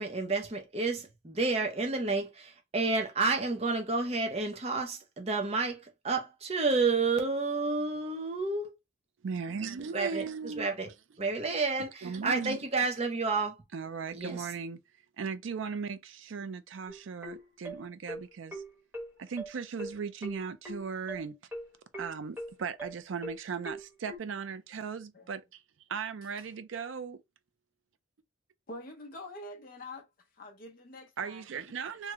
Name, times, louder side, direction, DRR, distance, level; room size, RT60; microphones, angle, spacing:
voice 1, 0.0-8.7 9.9-10.3 10.6-10.9 11.2-13.5 14.1-14.5, right 3 dB, 30° right, 0.6 m, -30 dB
voice 2, 9.2-10.7 12.0-12.6 13.7-14.8 15.2-18.6 19.2-21.4 22.0-25.6 25.9-27.2 31.2-32.1, right 5 dB, 75° right, 0.4 m, -37 dB
sound 1, 16.9-24.2, right 1 dB, 10° right, 0.9 m, -41 dB
voice 3, 28.7-30.1 30.3-31.5, left 1 dB, 45° left, 0.6 m, -45 dB
3.1 x 2.0 x 3.5 m
head